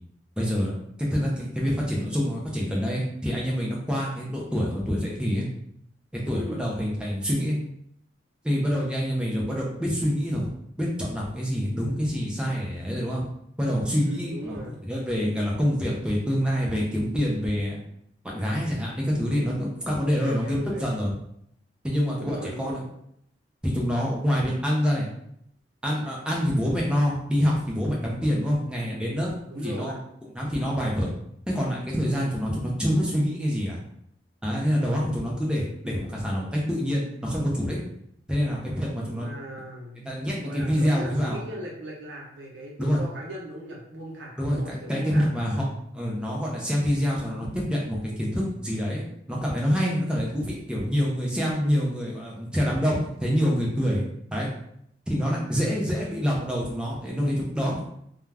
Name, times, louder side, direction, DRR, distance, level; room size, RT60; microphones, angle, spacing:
voice 1, 0.4-0.7 1.0-5.5 6.3-7.6 8.4-10.5 10.8-13.2 13.6-17.8 18.2-21.1 21.8-22.8 23.6-25.1 25.8-29.9 30.3-31.1 31.5-33.8 34.4-37.8 38.3-39.3 40.0-41.4 42.8-43.0 44.4-45.6 45.9-49.0 49.3-54.1 54.3-54.5 55.1-57.8, equal, 5° right, -4 dB, 0.5 m, -26 dB
voice 2, 6.3-6.7 14.0-14.8 20.0-20.9 22.2-22.8 29.5-30.0 39.2-40.1 40.4-45.3 51.5-51.8, right 1 dB, 85° right, -2 dB, 0.8 m, -38 dB
2.4 x 2.3 x 3.3 m, 0.73 s
head